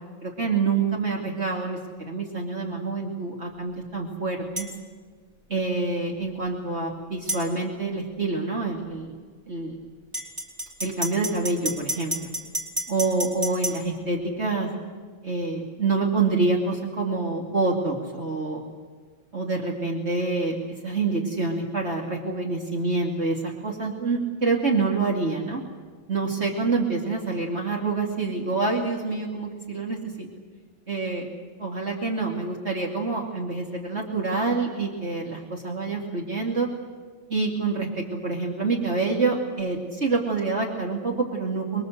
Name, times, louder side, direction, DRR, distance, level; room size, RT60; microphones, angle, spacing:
voice 1, 0.2-1.8 2.1-4.7 5.5-9.1 9.5-9.8 10.8-12.1 12.9-14.7 15.2-18.6 19.3-20.6 20.8-25.6 26.1-30.3 30.9-31.3 31.6-36.7 37.3-41.8, right 3 dB, 50° right, -1 dB, 2.8 m, -27 dB
sound 1, 4.6-4.7 7.3-7.4 10.1-13.8, right 1 dB, 25° right, 3.7 m, -30 dB
26.0 x 22.0 x 7.9 m, 1.5 s
omnidirectional pair, 1.5 m